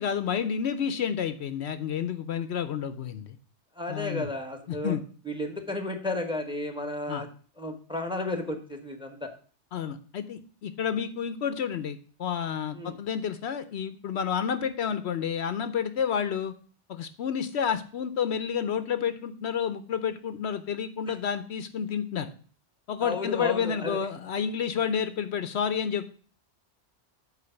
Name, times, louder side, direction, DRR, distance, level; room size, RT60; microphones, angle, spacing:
voice 1, 0.0-3.4 3.9-4.3 4.7-5.0 7.1-7.2 9.7-16.5 16.9-22.3 22.9-26.1, left 7 dB, 70° left, 11 dB, 0.9 m, -30 dB
voice 2, 3.7-5.0 5.2-7.3 7.6-9.3 12.7-12.9 21.1-21.2 23.0-24.0, left 2 dB, 5° right, 6 dB, 1.2 m, -33 dB
8.3 x 4.5 x 6.9 m, 0.42 s
omnidirectional pair, 1.2 m